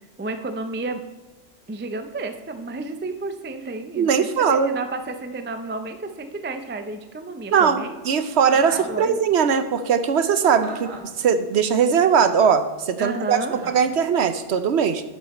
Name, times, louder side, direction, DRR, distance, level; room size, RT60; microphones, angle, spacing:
voice 1, 0.2-1.0 1.7-7.9 8.7-9.2 13.0-13.5, right 3 dB, 20° right, 7 dB, 0.3 m, -31 dB
voice 2, 4.0-4.7 7.5-10.9 11.2-15.0, right 7 dB, 60° right, 10 dB, 0.8 m, -20 dB
Chuckle chortle, 8.4-8.9 10.6-11.2 13.5-13.9, right 2 dB, 75° right, 2.1 m, -37 dB
11.0 x 6.2 x 4.2 m, 1.2 s
omnidirectional pair, 1.4 m